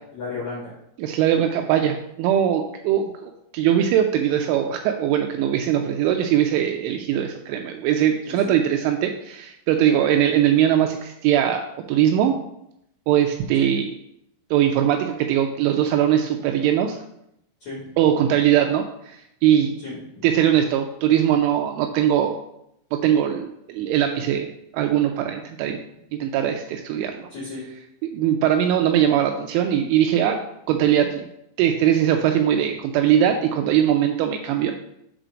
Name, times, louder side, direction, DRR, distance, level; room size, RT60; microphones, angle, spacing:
voice 1, 0.1-0.7 8.2-8.6 13.6-13.7 17.6-17.9 18.1-18.3 19.8-20.3 27.3-27.6 32.6-32.7, left 3 dB, 70° left, -5 dB, 1.7 m, -34 dB
voice 2, 1.0-12.3 13.1-13.9 14.5-17.0 18.0-19.7 20.2-22.4 22.9-24.5 24.7-25.8 26.1-27.3 28.0-30.4 30.7-31.3 31.6-34.7, right 10 dB, 85° right, 4 dB, 2.8 m, -21 dB
8.0 x 4.1 x 5.1 m, 0.80 s
omnidirectional pair, 5.9 m